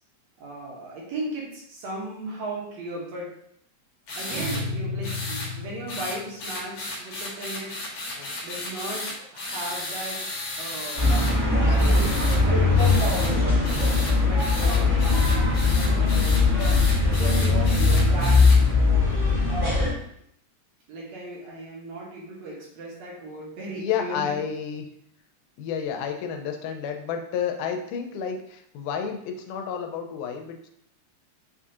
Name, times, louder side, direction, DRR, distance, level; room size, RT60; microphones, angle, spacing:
voice 1, 0.4-3.3 4.2-7.7 8.4-13.6 14.2-15.1 15.9-16.5 17.0-18.4 18.8-19.4 20.9-24.4, right 2 dB, 70° right, -5 dB, 1.9 m, -37 dB
sound 1, 4.1-4.6 5.0-5.5 5.9-11.3 11.8-12.4 12.8-13.3 13.6-18.6, left 2 dB, 65° left, 1.7 m, -34 dB
sound 2, 4.3-6.3, left 2 dB, 90° right, 2.5 m, -33 dB
sound 3, 11.0-19.9, left 3 dB, 50° right, 1.0 m, -20 dB
voice 2, 16.8-17.1 23.8-24.9 25.6-30.7, left 7 dB, 80° left, 4 dB, 2.0 m, -31 dB
5.2 x 2.4 x 2.6 m, 0.70 s
omnidirectional pair, 3.7 m